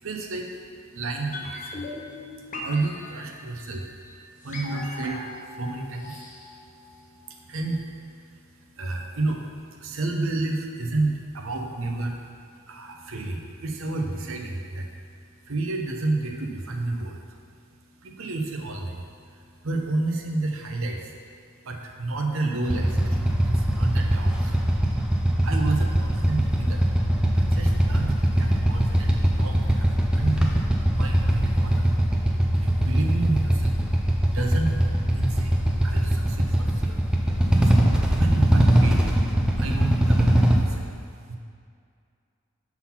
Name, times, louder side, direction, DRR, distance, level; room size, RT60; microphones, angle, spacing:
voice 1, 0.0-0.6 0.9-1.8 2.5-12.2 12.7-14.9 15.4-24.6 25.4-34.8 35.1-41.4, right 2 dB, 60° right, 2 dB, 0.7 m, -31 dB
sound 1, 1.3-7.4 7.6-7.7, left 2 dB, 35° left, 0.7 m, -39 dB
Motorcycle / Idling, 22.6-40.5, right 1 dB, 5° right, 0.4 m, -21 dB
5.8 x 4.0 x 5.7 m, 2.3 s
head